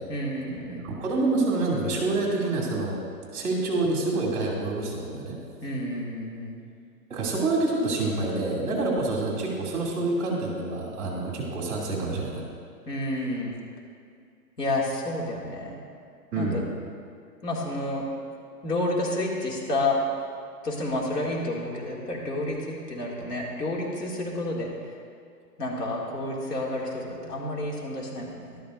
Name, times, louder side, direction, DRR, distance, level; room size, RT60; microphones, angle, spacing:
voice 1, 0.1-0.9 5.6-6.6 12.9-13.6 14.6-15.8 16.3-16.6 17.4-18.0 18.6-20.0 20.6-25.0 25.6-28.6, left 1 dB, 75° left, -3 dB, 2.5 m, -30 dB
voice 2, 0.8-3.0 3.3-5.4 7.1-12.4 16.3-16.6, right 2 dB, 25° right, -4 dB, 2.5 m, -27 dB
12.5 x 12.5 x 2.6 m, 2.3 s
hypercardioid pair, 160°, 49 cm